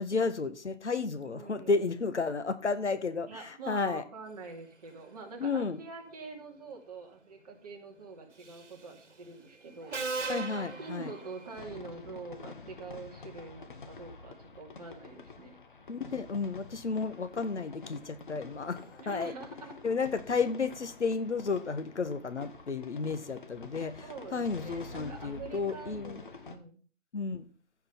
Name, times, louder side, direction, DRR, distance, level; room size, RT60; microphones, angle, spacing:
voice 1, 0.0-4.0 5.4-5.8 10.3-11.1 15.9-19.3 19.8-26.2 27.1-27.5, left 4 dB, 70° left, 1.5 m, -32 dB
voice 2, 1.2-1.9 3.3-10.0 10.5-15.6 19.0-19.8 24.0-26.8, right 4 dB, 30° right, 2.5 m, -45 dB
Subway metro underground, 8.4-8.8 9.9-11.6, right 3 dB, 75° right, 2.1 m, -37 dB
sound 1, 9.0-9.1 9.6-12.0 12.6-12.9, right 1 dB, ahead, 3.7 m, -56 dB
sound 2, 11.6-26.6, left 4 dB, 40° left, 1.6 m, -48 dB
15.0 x 5.6 x 5.7 m
figure-of-eight pair, 165°, 36 cm